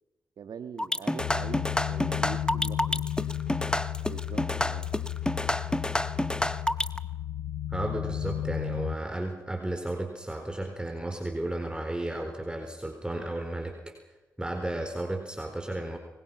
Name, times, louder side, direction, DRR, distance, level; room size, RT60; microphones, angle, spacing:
voice 1, 0.4-1.6 1.9-3.0 4.0-4.9, right 7 dB, 70° right, 11 dB, 1.5 m, -43 dB
sound 1, 0.8-7.0, left 1 dB, 10° left, 1.5 m, -28 dB
sound 2, 1.2-9.0, left 11 dB, 80° left, 0.7 m, -33 dB
voice 2, 7.7-14.0 14.4-16.0, right 1 dB, 10° right, 4 dB, 4.2 m, -33 dB
25.5 x 22.5 x 5.9 m, 1.1 s
supercardioid pair, 40°, 7 cm